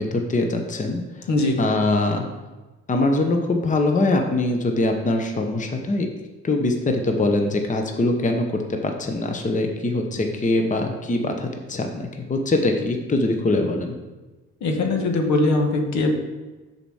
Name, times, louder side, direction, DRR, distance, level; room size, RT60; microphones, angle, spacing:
voice 1, 0.0-1.3 1.6-2.3 2.9-6.1 6.4-13.9, left 2 dB, 25° left, 4 dB, 0.9 m, -23 dB
voice 2, 1.3-1.6 14.6-16.1, left 2 dB, 70° left, 4 dB, 1.2 m, -21 dB
6.8 x 4.2 x 6.2 m, 1.2 s
cardioid pair, 90°, 30 cm